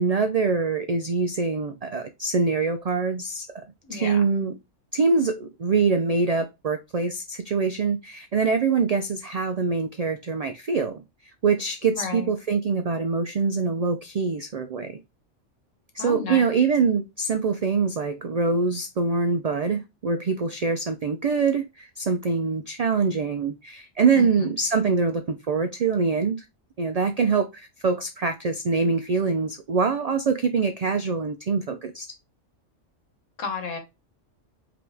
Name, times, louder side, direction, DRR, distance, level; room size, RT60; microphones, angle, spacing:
voice 1, 0.0-3.6 3.9-4.5 4.9-15.0 15.9-26.5 26.8-32.1, right 4 dB, 75° right, 0.3 m, -24 dB
voice 2, 3.9-4.2 11.9-12.3 16.0-16.4 24.2-24.5 33.4-33.8, left 5 dB, 90° left, 1.5 m, -32 dB
5.0 x 3.0 x 3.4 m
omnidirectional pair, 1.3 m